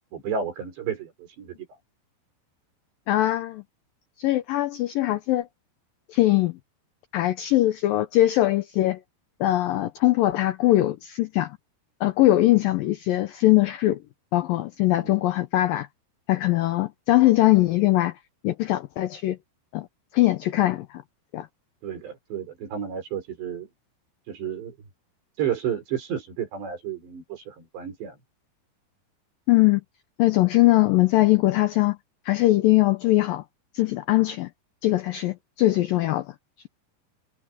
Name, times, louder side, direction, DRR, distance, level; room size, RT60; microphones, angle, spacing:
voice 1, 0.0-1.6 15.0-15.2 21.8-23.7 24.3-24.8 25.4-28.2, right 8 dB, 75° right, 7.5 m, -31 dB
voice 2, 3.1-3.6 4.2-5.5 6.1-6.6 7.1-9.0 9.4-11.6 12.0-14.0 14.3-15.9 16.3-18.1 18.4-19.4 19.7-19.9 20.1-21.0 21.3-21.5 29.5-29.8 30.2-32.0 32.3-33.4 33.7-34.5 34.8-36.3, left 16 dB, 80° left, 2.0 m, -21 dB
omnidirectional pair, 5.0 m